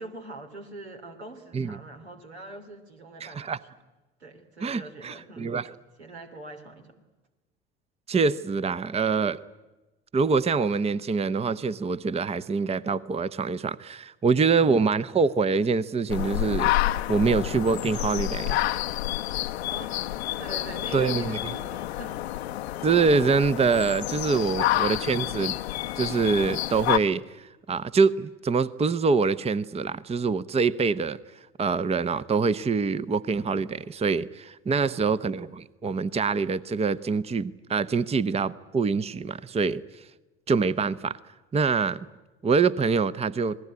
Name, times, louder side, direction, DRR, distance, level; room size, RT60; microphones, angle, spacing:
voice 1, 0.0-3.6 4.2-5.5 6.0-6.9 19.7-20.1 20.4-22.2 24.4-24.8 34.8-35.1, right 2 dB, 85° right, 4 dB, 3.1 m, -43 dB
voice 2, 3.2-3.6 4.6-5.7 8.1-9.4 10.1-18.6 20.9-21.5 22.8-25.5 25.9-31.2 31.6-39.8 40.5-41.2 41.5-42.1 42.4-43.6, right 4 dB, 20° right, 16 dB, 0.8 m, -25 dB
sound 1, 16.1-27.0, left 15 dB, 75° left, 0.8 m, -29 dB
27.5 x 19.5 x 9.6 m, 1.1 s
hypercardioid pair, 65°, 32 cm